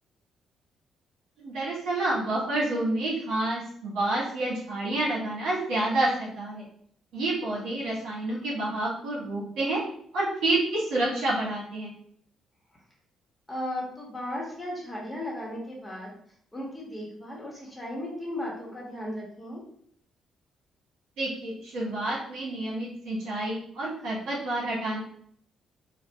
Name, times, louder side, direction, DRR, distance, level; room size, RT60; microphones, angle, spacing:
voice 1, 1.4-6.6 7.1-9.8 10.1-11.9 21.2-25.0, right 2 dB, 80° right, -6 dB, 1.4 m, -29 dB
voice 2, 13.5-16.1 16.5-19.6, left 1 dB, 15° left, -3 dB, 1.1 m, -36 dB
4.0 x 2.3 x 2.2 m, 0.63 s
cardioid pair, 90°, 0 cm